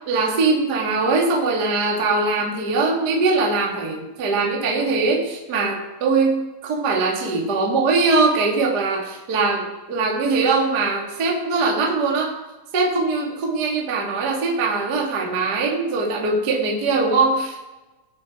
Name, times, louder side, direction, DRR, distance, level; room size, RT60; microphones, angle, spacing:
voice 1, 0.0-12.3 12.7-17.7, right 3 dB, 65° right, -1 dB, 1.0 m, -21 dB
20.0 x 6.8 x 4.9 m, 1.1 s
omnidirectional pair, 5.9 m